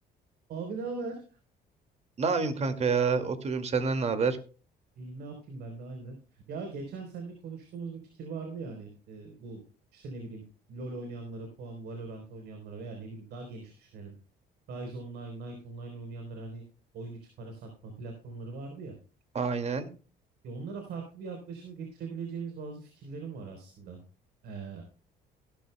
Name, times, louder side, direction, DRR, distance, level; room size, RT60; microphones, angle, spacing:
voice 1, 0.5-1.4 4.9-9.6 9.9-10.4 10.7-14.1 14.7-16.6 16.9-18.9 20.4-24.0 24.4-24.8, right 4 dB, 70° right, 4 dB, 3.9 m, -40 dB
voice 2, 2.2-4.4 19.3-19.9, right 5 dB, 40° right, 10 dB, 2.2 m, -28 dB
17.0 x 12.5 x 2.2 m, 0.37 s
cardioid pair, 110°, 17 cm